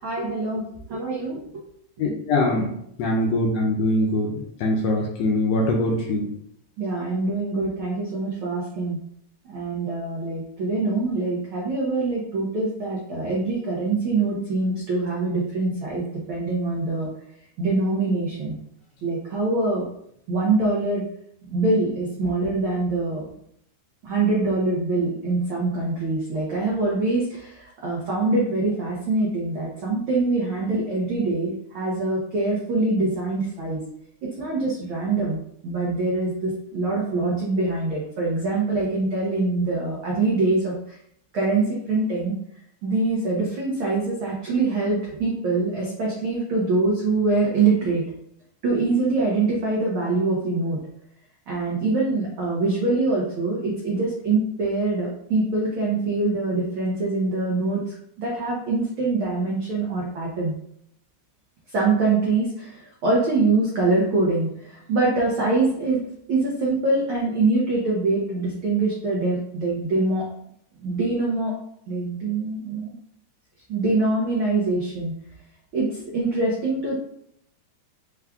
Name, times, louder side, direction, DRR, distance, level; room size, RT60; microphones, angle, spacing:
voice 1, 0.0-0.6 0.9-1.4 6.8-9.0 9.5-16.0 16.3-17.1 17.6-18.6 19.0-19.8 20.3-21.0 21.5-23.3 24.0-33.8 34.4-41.0 41.3-42.3 42.8-48.0 48.6-50.8 51.5-60.5 61.7-66.0 66.3-70.3 70.8-71.5 71.9-72.9 73.7-75.1 75.7-77.0, right 3 dB, 85° right, -4 dB, 1.1 m, -24 dB
voice 2, 2.0-2.7 3.0-4.3 4.6-6.3, left 1 dB, 80° left, -1 dB, 1.5 m, -22 dB
4.8 x 2.3 x 3.5 m, 0.71 s
omnidirectional pair, 3.4 m